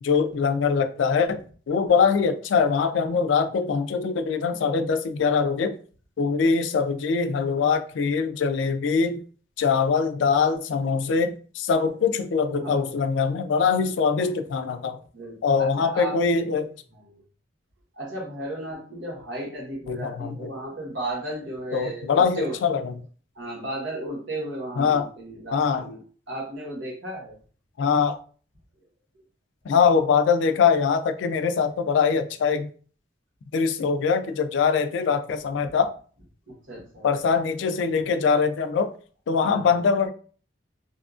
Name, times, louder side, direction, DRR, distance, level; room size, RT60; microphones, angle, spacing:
voice 1, 0.0-1.4 1.7-5.7 6.2-9.2 9.6-15.0 15.4-16.7 19.9-20.5 21.7-22.9 24.8-25.1 25.5-25.8 27.8-28.2 29.6-32.7 33.5-35.9 37.0-38.9 39.3-40.1, left 5 dB, 75° left, 0.3 m, -23 dB
voice 2, 15.1-16.5 16.9-17.2 17.9-22.6 23.3-26.0 26.3-27.3 36.5-37.1 39.4-39.8, right 1 dB, 80° right, 1.2 m, -34 dB
2.7 x 2.3 x 2.4 m
head